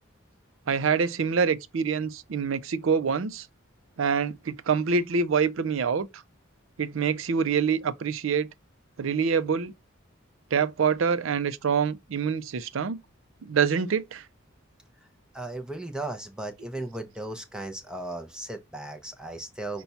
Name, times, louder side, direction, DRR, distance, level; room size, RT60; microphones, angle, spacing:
voice 1, 0.7-3.5 4.0-6.2 6.8-8.5 9.0-9.7 10.5-13.0 13.4-14.2, right 6 dB, 80° right, 0.5 m, -26 dB
voice 2, 15.3-19.8, right 2 dB, 5° right, 0.5 m, -36 dB
5.7 x 2.3 x 4.0 m
head